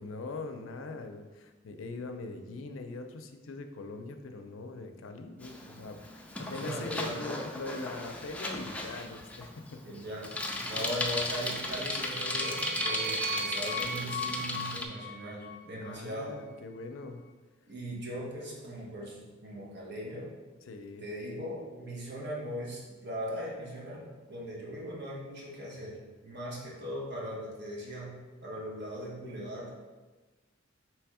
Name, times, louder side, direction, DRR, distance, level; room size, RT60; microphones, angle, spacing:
voice 1, 0.0-10.0 15.8-17.2 20.6-21.0, left 3 dB, 75° left, 6 dB, 0.5 m, -42 dB
Bicycle, 5.4-14.8, left 2 dB, 5° left, 0.3 m, -36 dB
voice 2, 6.4-7.2 9.8-10.3 10.6-16.4 17.7-20.3 21.0-29.7, equal, 60° right, -4 dB, 1.1 m, -39 dB
sound 1, 11.5-15.9, right 1 dB, 40° right, 0.6 m, -37 dB
3.4 x 3.1 x 4.7 m, 1.3 s
head